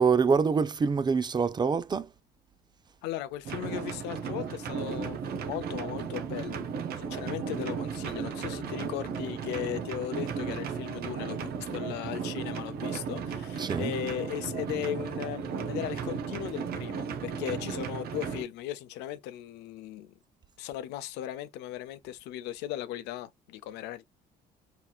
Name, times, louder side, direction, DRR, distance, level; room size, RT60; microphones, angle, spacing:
voice 1, 0.0-2.1 13.6-13.9, right 5 dB, 25° right, 0.5 m, -25 dB
voice 2, 3.0-6.6 7.0-20.1 20.6-24.1, left 12 dB, 90° left, 0.5 m, -37 dB
sound 1, 3.4-18.4, right 6 dB, 65° right, 0.9 m, -35 dB
4.3 x 3.5 x 2.3 m
cardioid pair, 110°, 17 cm